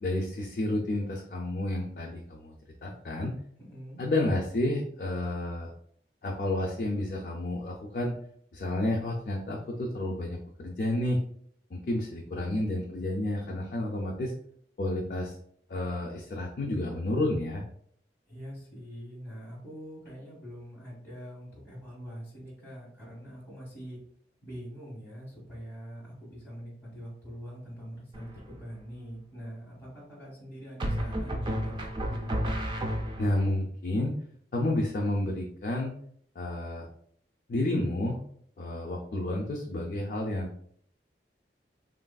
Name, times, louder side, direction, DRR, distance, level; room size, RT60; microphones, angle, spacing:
voice 1, 0.0-2.5 2.8-3.3 4.0-5.7 6.2-8.1 8.5-11.2 11.7-14.3 14.8-15.4 15.7-17.6 33.2-34.1 34.5-35.9 36.4-36.9 37.5-38.2 38.6-40.5, left 1 dB, 50° left, 0 dB, 0.3 m, -30 dB
voice 2, 3.6-4.0 18.3-24.0 24.4-32.3, equal, 10° left, -7 dB, 1.2 m, -44 dB
sound 1, 28.1-28.6 30.8-33.5, equal, 25° right, 0.3 m, -31 dB
3.1 x 2.4 x 2.2 m, 0.64 s
head